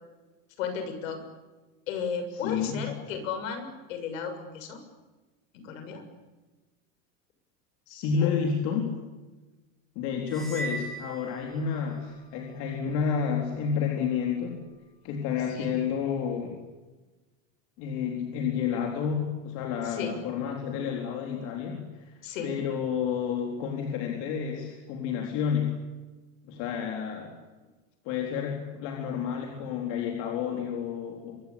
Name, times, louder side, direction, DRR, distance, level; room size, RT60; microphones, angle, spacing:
voice 1, 0.6-1.2 1.9-4.8 5.5-6.0 8.2-8.3 15.5-15.7 19.9-20.2 22.2-22.5, left 6 dB, 85° left, 8 dB, 7.0 m, -34 dB
voice 2, 2.3-2.9 7.9-9.0 10.0-14.7 15.0-16.6 17.8-22.1 22.4-25.8 26.5-27.4 28.0-31.4, left 7 dB, 50° left, 1 dB, 4.0 m, -30 dB
sound 1, 10.3-12.1, right 3 dB, ahead, 5.9 m, -39 dB
25.5 x 23.5 x 8.7 m, 1.2 s
supercardioid pair, 165°, 39 cm